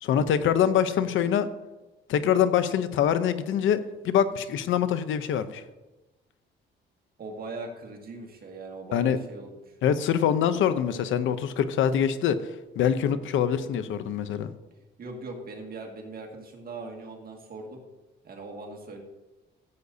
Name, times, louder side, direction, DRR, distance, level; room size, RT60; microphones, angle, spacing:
voice 1, 0.0-1.5 2.1-5.6 8.9-9.2 9.8-14.5, left 9 dB, 80° left, 12 dB, 0.7 m, -24 dB
voice 2, 7.2-9.7 15.0-17.8 18.2-19.0, right 3 dB, 50° right, 1 dB, 1.9 m, -40 dB
14.5 x 8.0 x 2.7 m, 1.1 s
cardioid pair, 90°, 20 cm